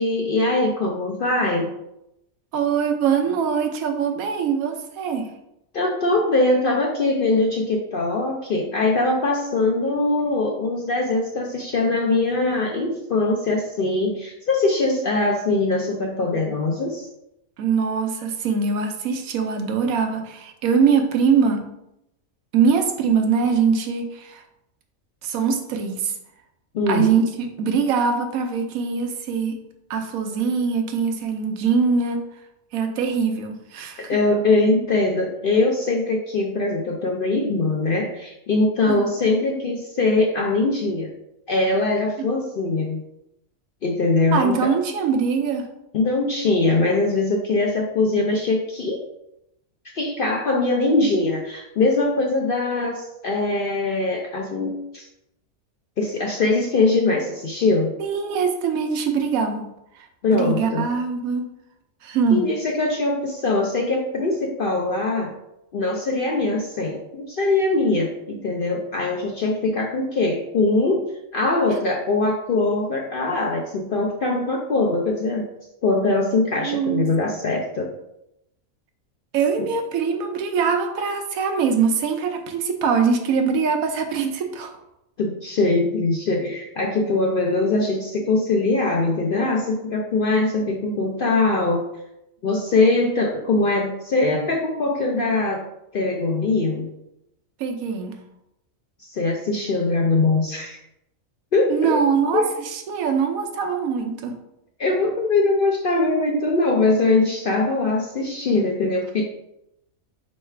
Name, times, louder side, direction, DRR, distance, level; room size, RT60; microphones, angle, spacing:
voice 1, 0.0-1.7 5.7-17.1 26.7-27.1 34.1-41.1 41.5-43.0 43.8-44.6 45.9-49.0 49.9-55.1 56.0-57.9 60.2-60.9 62.3-65.3 65.7-71.0 71.3-75.5 75.8-77.9 79.6-79.7 85.2-91.9 92.4-95.6 95.9-96.9 99.0-100.8 101.5-102.0 102.3-102.4 104.8-109.2, left 2 dB, 65° left, 0 dB, 0.5 m, -22 dB
voice 2, 2.5-5.3 17.6-21.7 22.5-24.4 25.2-26.1 26.9-29.6 29.9-32.2 32.7-34.2 38.9-39.0 42.2-42.3 44.3-45.7 58.0-59.7 60.0-60.1 60.3-61.5 62.0-62.5 76.6-77.1 79.3-84.7 97.6-98.2 101.7-104.4, right 6 dB, 85° right, 5 dB, 1.1 m, -22 dB
4.6 x 3.1 x 3.2 m, 0.84 s
omnidirectional pair, 1.4 m